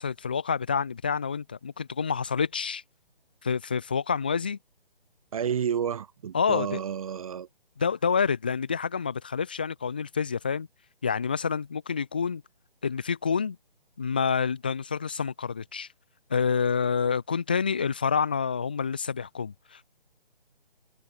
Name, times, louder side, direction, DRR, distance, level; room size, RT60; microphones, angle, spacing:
voice 1, 0.0-2.8 3.4-4.6 6.3-6.8 7.8-10.7 11.0-12.4 12.8-13.6 14.0-15.9 16.3-19.9, left 6 dB, 10° left, 0.4 m, -28 dB
voice 2, 5.3-7.5, right 8 dB, 35° right, 1.1 m, -30 dB
figure-of-eight pair, 145°, 29 cm